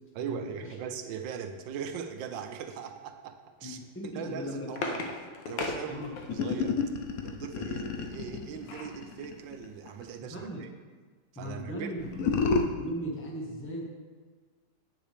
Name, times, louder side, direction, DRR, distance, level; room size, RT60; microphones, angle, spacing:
voice 1, 0.1-3.8 4.1-5.0 5.5-6.0 6.3-6.8 7.2-10.7 11.3-11.9, right 7 dB, 90° right, 7 dB, 1.4 m, -39 dB
voice 2, 3.6-4.7 5.9-6.1 10.2-10.7 11.3-13.8, equal, 10° left, -2 dB, 1.2 m, -38 dB
sound 1, 4.1-6.6 8.1-9.0 9.5-9.6 9.9-10.1, left 3 dB, 85° left, 1.6 m, -38 dB
sound 2, 6.3-10.1 12.0-12.6, left 5 dB, 60° left, 1.1 m, -30 dB
9.9 x 8.3 x 3.4 m, 1.5 s
omnidirectional pair, 2.0 m